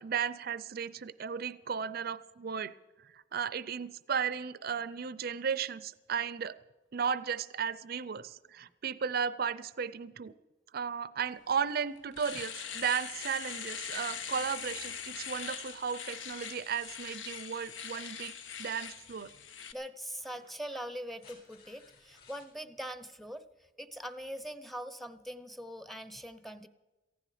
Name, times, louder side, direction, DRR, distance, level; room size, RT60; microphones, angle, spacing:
voice 1, 0.0-2.7 3.0-6.6 6.9-10.3 10.7-18.3 18.6-19.3, right 7 dB, 55° right, 16 dB, 0.5 m, -35 dB
Domestic sounds home sounds, 11.5-11.6 12.0-19.7, left 7 dB, 85° left, 1.1 m, -42 dB
sound 1, 18.9-19.1 20.1-22.5 24.0-24.1, left 5 dB, 55° left, 6.4 m, -60 dB
voice 2, 19.7-23.4 23.8-26.7, equal, ahead, 12 dB, 0.7 m, -42 dB
18.0 x 15.5 x 5.0 m, 1.1 s
head